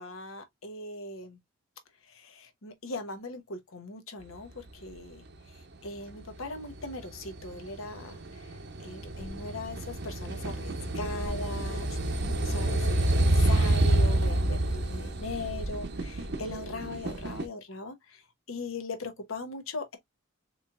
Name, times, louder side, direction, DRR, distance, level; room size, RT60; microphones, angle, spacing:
voice 1, 0.0-1.4 2.1-5.3 5.8-8.4 8.8-18.2 18.5-20.0, left 2 dB, 75° left, 0.9 m, -39 dB
sound 1, 6.1-17.4, right 1 dB, 50° right, 0.7 m, -28 dB
4.0 x 3.1 x 2.4 m
head